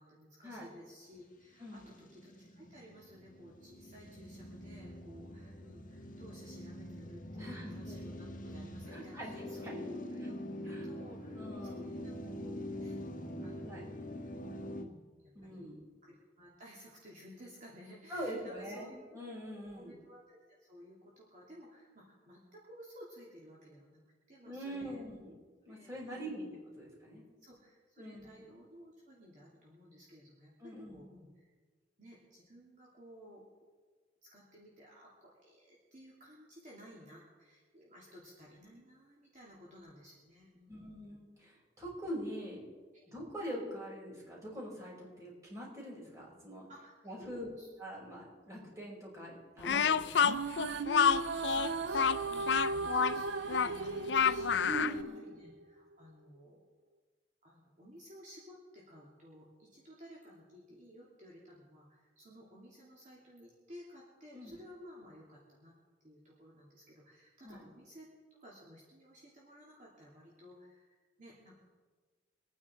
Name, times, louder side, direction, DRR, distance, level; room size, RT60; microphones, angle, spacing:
voice 1, 0.0-13.0 13.4-14.0 14.8-15.7 16.0-24.0 24.3-25.0 25.7-26.5 26.8-27.0 27.4-31.5 32.0-33.5 34.2-41.1 42.0-42.1 42.9-43.0 46.7-47.7 50.9-51.0 51.4-56.6 57.4-65.7 66.0-71.6, equal, 40° right, -5 dB, 2.9 m, -55 dB
sound 1, 1.5-14.8, equal, 45° left, 1.7 m, -44 dB
voice 2, 1.6-1.9 7.4-8.3 8.9-9.3 9.6-9.8 10.7-10.9 11.4-11.9 13.6-13.8 15.4-15.8 18.1-19.9 24.5-25.3 25.7-26.5 26.8-27.2 28.0-28.4 30.6-31.0 40.7-42.6 43.1-46.7 47.0-47.5 47.8-50.3 54.6-55.2 64.3-64.5 67.4-67.6, equal, 15° right, -3 dB, 5.3 m, -43 dB
Speech, 49.6-55.0, left 7 dB, 65° left, 0.5 m, -29 dB
sound 2, 50.1-55.6, right 4 dB, 80° right, 0.6 m, -37 dB
24.5 x 9.7 x 4.5 m, 1.4 s
head